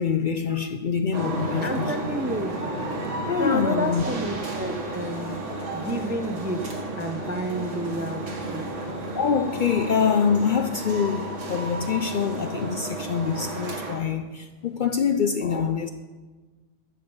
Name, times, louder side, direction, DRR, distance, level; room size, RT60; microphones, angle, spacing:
voice 1, 0.0-1.9 3.3-4.0 8.9-15.9, left 6 dB, 60° left, 0.5 m, -25 dB
sound 1, 1.1-14.0, right 2 dB, 85° right, 2.1 m, -32 dB
voice 2, 1.6-2.6 3.4-5.4 5.7-6.6 7.0-8.2 8.5-8.7 15.4-15.7, right 1 dB, 15° right, 0.3 m, -30 dB
13.5 x 5.4 x 6.9 m
omnidirectional pair, 1.2 m